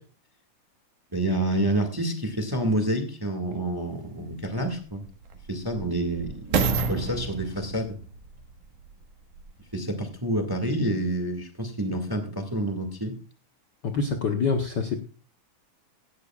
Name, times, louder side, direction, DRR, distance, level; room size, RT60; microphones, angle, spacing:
voice 1, 1.1-5.0 5.5-6.6 6.9-8.0 9.7-13.2, right 1 dB, 10° right, 6 dB, 1.0 m, -28 dB
sound 1, 3.5-3.6 4.3-9.6 10.3-10.4, right 5 dB, 80° right, 3.0 m, -31 dB
voice 2, 13.8-15.0, left 5 dB, 85° left, 4 dB, 0.9 m, -26 dB
16.5 x 13.5 x 2.4 m, 0.37 s
omnidirectional pair, 3.6 m